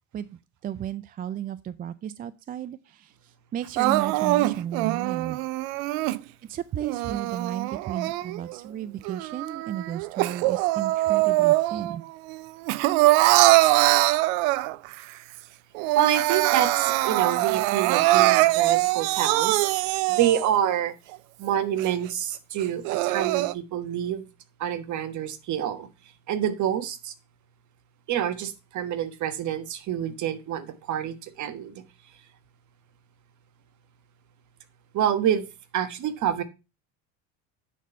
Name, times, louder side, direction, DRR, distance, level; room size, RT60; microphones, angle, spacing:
voice 1, 0.1-5.4 6.5-12.0, right 10 dB, 25° right, 0.3 m, -34 dB
Crying sobbing, 3.8-6.2 6.8-8.6 9.0-12.0 12.3-14.9 15.4-15.5 15.7-20.6 21.1-21.2 21.8-21.9 22.6-23.5, right 18 dB, 75° right, 0.6 m, -23 dB
voice 2, 15.9-20.9 21.4-24.3 24.6-25.9 26.3-27.1 28.1-31.7 34.9-35.5 35.7-36.4, right 10 dB, 50° right, 1.3 m, -27 dB
9.2 x 4.2 x 5.4 m
supercardioid pair, 110°, 38 cm